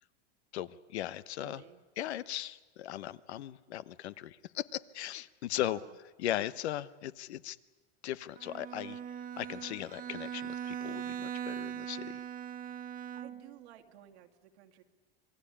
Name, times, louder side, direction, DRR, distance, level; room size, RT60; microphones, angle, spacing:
voice 1, 0.5-1.6 2.0-5.8 6.2-7.6 8.0-9.0 9.4-12.2, left 13 dB, 90° left, 16 dB, 1.1 m, -38 dB
voice 2, 1.4-1.8 5.6-5.9 13.1-14.8, right 12 dB, 85° right, 5 dB, 2.4 m, -55 dB
Bowed string instrument, 8.4-13.6, right 9 dB, 25° right, 1.2 m, -40 dB
27.0 x 21.0 x 9.9 m, 1.2 s
supercardioid pair, 125°, 32 cm